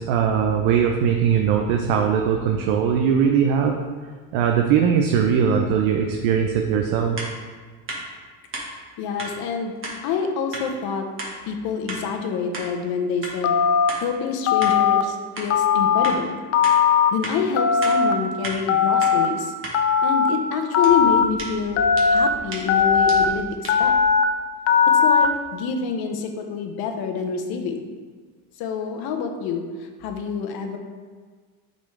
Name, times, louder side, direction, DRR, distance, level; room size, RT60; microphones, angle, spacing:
voice 1, 0.0-3.8 4.3-7.2, right 7 dB, 80° right, 2 dB, 0.7 m, -20 dB
sound 1, 7.2-7.3 7.9-8.0 8.5-8.7 9.2-9.3 9.8-10.0 10.5-10.7 11.2-11.3 11.9-12.0 12.5-12.7 13.2-13.4 13.9-14.0 14.6-14.8 15.4-15.5 16.0-16.2 16.6-16.8 17.2-17.4 17.8-18.0 18.4-18.6 19.0-19.1 19.6-19.8 20.8-24.1, right 2 dB, 30° right, 1.4 m, -34 dB
voice 2, 9.0-9.7 10.0-11.1 11.4-13.6 14.0-16.4 17.1-19.5 20.0-21.8 22.1-23.9 24.9-27.9 28.6-30.8, left 5 dB, 60° left, 5 dB, 1.0 m, -27 dB
Telephone, 13.4-13.9 14.5-15.0 15.5-16.1 16.5-17.1 17.6-18.1 18.7-19.3 19.7-20.3 20.7-21.2 21.8-22.3 22.7-23.2 23.7-24.2 24.7-25.2, left 7 dB, 35° left, 0.4 m, -18 dB
8.4 x 4.0 x 3.2 m, 1.5 s
supercardioid pair, 115°, 41 cm